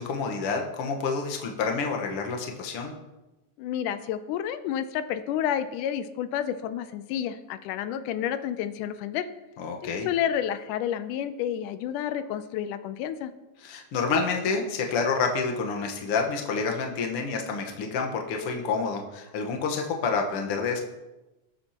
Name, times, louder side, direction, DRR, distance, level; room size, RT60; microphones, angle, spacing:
voice 1, 0.0-2.9 9.6-10.1 13.6-20.8, left 4 dB, 55° left, 2 dB, 1.9 m, -28 dB
voice 2, 3.6-9.3 10.1-13.3, left 10 dB, 85° left, 11 dB, 2.2 m, -30 dB
19.0 x 8.8 x 2.9 m, 1.1 s
omnidirectional pair, 3.5 m